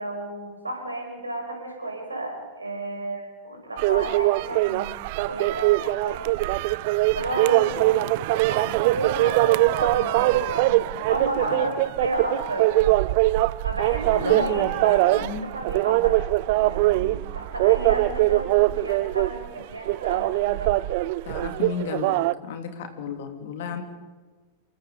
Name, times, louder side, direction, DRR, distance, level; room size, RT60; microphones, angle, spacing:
voice 1, 0.0-5.0 5.2-6.4 7.1-12.7 13.0-13.1 13.6-16.2 16.6-20.7, right 1 dB, 80° right, 3 dB, 6.3 m, -32 dB
sound 1, 3.8-22.3, right 18 dB, 50° right, 0.6 m, -22 dB
voice 2, 11.4-11.7 14.1-15.5 21.3-22.2 22.4-23.8, left 6 dB, 55° left, 6 dB, 3.5 m, -34 dB
28.0 x 23.0 x 5.3 m, 1.3 s
figure-of-eight pair, 90°, 0 cm